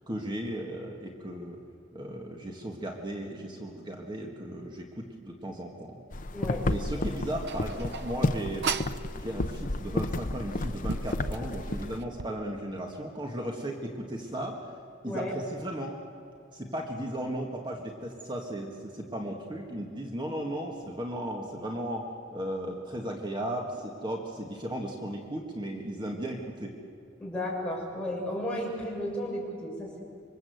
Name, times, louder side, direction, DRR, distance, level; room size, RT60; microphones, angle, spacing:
voice 1, 0.1-1.6 1.9-6.0 6.7-8.8 9.2-14.7 15.0-16.0 16.5-26.7, right 1 dB, 25° right, 1 dB, 1.8 m, -36 dB
sound 1, 6.1-12.0, left 2 dB, 45° left, 0.8 m, -32 dB
voice 2, 6.3-6.6 7.0-7.1 15.0-15.3 27.2-30.0, left 1 dB, 5° left, -3 dB, 6.2 m, -34 dB
sound 2, 7.4-9.0 10.0-10.1 10.6-12.4, right 5 dB, 60° right, 0.7 m, -36 dB
26.5 x 24.0 x 8.0 m, 2.4 s
head